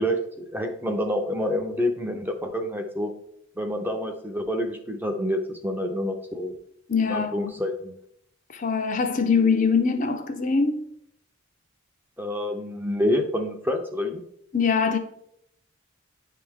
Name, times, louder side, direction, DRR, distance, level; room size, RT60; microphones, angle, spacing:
voice 1, 0.0-3.1 3.6-6.6 7.1-7.9 12.2-14.2, left 1 dB, 10° right, 0.6 m, -27 dB
voice 2, 6.9-7.5 8.5-10.9 14.5-15.0, left 5 dB, 35° left, 0.5 m, -23 dB
9.9 x 3.3 x 3.5 m
head